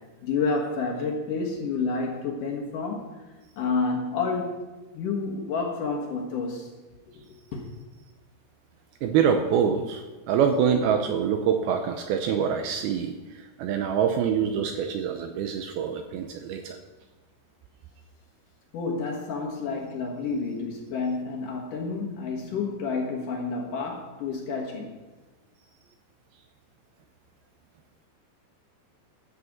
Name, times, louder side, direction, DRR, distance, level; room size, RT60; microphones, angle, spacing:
voice 1, 0.2-3.2 3.6-4.7 4.9-6.7 7.5-7.6 18.7-25.0, left 4 dB, 60° left, 0 dB, 2.5 m, -29 dB
voice 2, 9.0-16.8, right 7 dB, 80° right, 5 dB, 2.3 m, -25 dB
13.5 x 6.7 x 7.3 m, 1.2 s
omnidirectional pair, 4.9 m